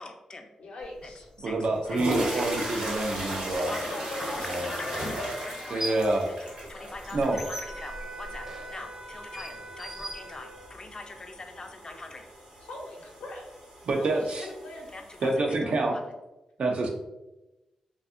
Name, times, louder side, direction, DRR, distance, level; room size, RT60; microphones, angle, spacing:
voice 1, 0.0-0.5 1.0-1.1 1.4-1.6 1.9-2.0 2.3-2.4 2.8-3.0 3.7-12.2 14.9-15.6, left 3 dB, 40° left, 5 dB, 0.4 m, -43 dB
voice 2, 0.6-1.3 3.5-5.2 12.7-13.4 14.0-14.9 15.6-15.9, left 1 dB, 80° left, -1 dB, 0.7 m, -40 dB
sound 1, 1.0-1.1 1.7-15.3, right 1 dB, 85° right, 1.0 m, -37 dB
voice 3, 1.4-3.7 4.4-4.7 5.7-6.3 7.1-7.4 13.9-14.5 15.2-16.0 16.6-16.9, right 2 dB, 70° right, 2 dB, 0.5 m, -27 dB
sound 2, 4.3-4.4 5.5-6.2 6.5-10.9, equal, 25° right, 0.6 m, -40 dB
Wind instrument woodwind instrument, 7.3-10.8, right 2 dB, 50° right, 1.1 m, -44 dB
2.6 x 2.3 x 2.4 m, 0.99 s
cardioid pair, 50°, 2 cm